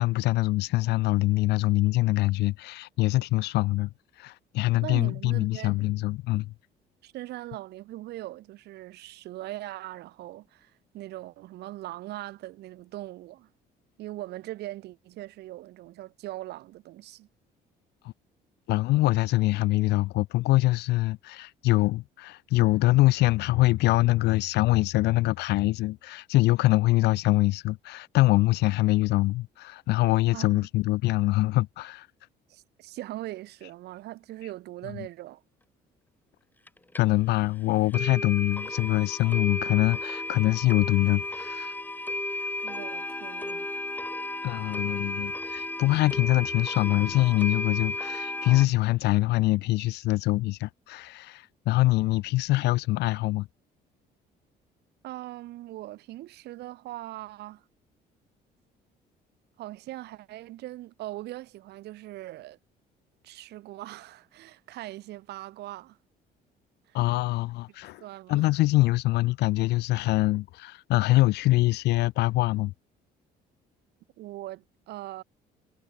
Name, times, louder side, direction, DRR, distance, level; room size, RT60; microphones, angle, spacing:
voice 1, 0.0-3.9 4.2-6.5 18.7-32.1 37.0-41.7 44.4-53.5 66.9-68.0 68.3-72.7, left 18 dB, 85° left, 1.5 m, -24 dB
voice 2, 4.8-5.8 7.0-13.5 14.0-17.3 30.3-30.6 32.5-35.4 42.6-43.7 55.0-57.6 59.6-62.6 63.2-66.0 66.9-67.0 68.0-68.6 74.2-75.2, right 16 dB, 80° right, 4.7 m, -40 dB
sound 1, 36.7-36.8 36.9-37.0 37.4-37.5 37.9-48.6, left 2 dB, 10° left, 4.2 m, -33 dB
cardioid pair, 110°, 17 cm